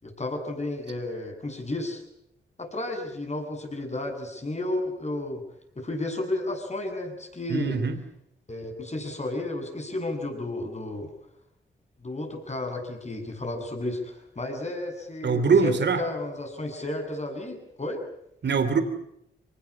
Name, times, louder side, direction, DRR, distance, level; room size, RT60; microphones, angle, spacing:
voice 1, 0.0-2.0 2.6-5.4 5.8-7.8 8.5-11.1 12.0-18.0, left 2 dB, 35° left, 4 dB, 7.9 m, -32 dB
voice 2, 7.5-8.0 15.2-16.0 18.4-18.8, right 5 dB, 60° right, 11 dB, 3.1 m, -22 dB
24.0 x 20.0 x 8.8 m, 0.78 s
supercardioid pair, 50°, 20 cm